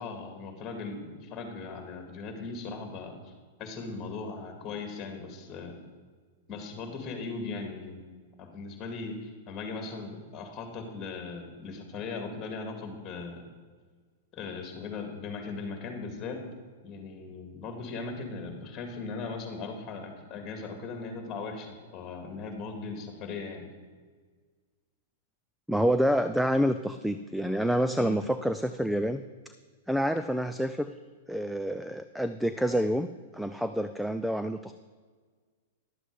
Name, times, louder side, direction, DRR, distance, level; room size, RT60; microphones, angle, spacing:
voice 1, 0.0-3.3 3.6-5.8 6.5-13.5 14.3-16.4 16.8-23.7 28.0-28.2, left 4 dB, 30° left, 5 dB, 2.2 m, -38 dB
voice 2, 25.7-29.2 29.9-30.9 31.3-33.1 33.3-34.7, equal, ahead, 10 dB, 0.3 m, -27 dB
11.5 x 7.9 x 4.8 m, 1.5 s
hypercardioid pair, 125°, 0 cm